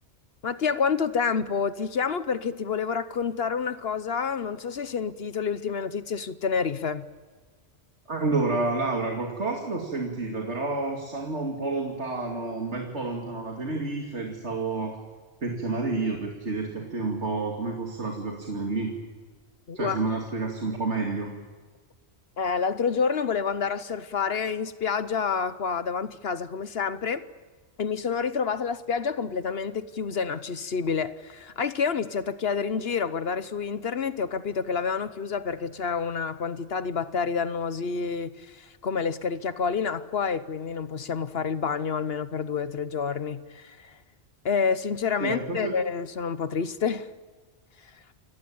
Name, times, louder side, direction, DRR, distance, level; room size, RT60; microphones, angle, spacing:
voice 1, 0.4-7.1 19.7-20.0 22.4-27.2 27.8-44.0 44.4-47.1, left 6 dB, 65° left, 13 dB, 1.1 m, -28 dB
voice 2, 8.1-15.0 15.4-18.9 19.7-21.3 45.2-45.7, right 3 dB, 85° right, 1 dB, 2.9 m, -29 dB
29.0 x 18.0 x 8.7 m, 1.4 s
omnidirectional pair, 1.1 m